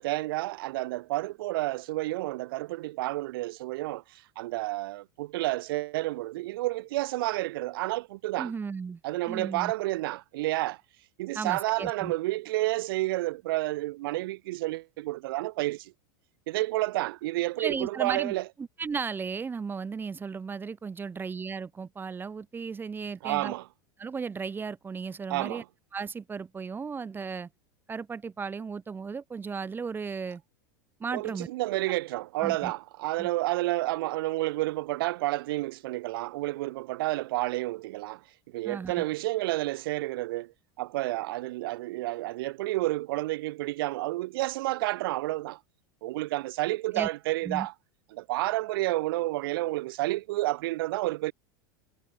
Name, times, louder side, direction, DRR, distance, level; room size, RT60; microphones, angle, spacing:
voice 1, 0.0-4.0 4.4-8.5 9.0-10.8 11.2-15.9 16.5-18.4 23.2-23.7 25.3-25.6 31.1-38.2 38.5-40.5 40.8-45.6 46.0-47.7 48.1-51.3, right 18 dB, 75° right, 1.0 m, -30 dB
voice 2, 8.4-9.0 9.3-9.7 11.3-12.1 17.6-23.5 24.0-25.6 25.9-27.5 27.9-30.4 31.0-31.5 32.4-32.7 33.2-33.3 38.6-39.0 46.9-47.1 47.4-47.7, right 5 dB, 15° right, 1.6 m, -35 dB
supercardioid pair, 125°, 12 cm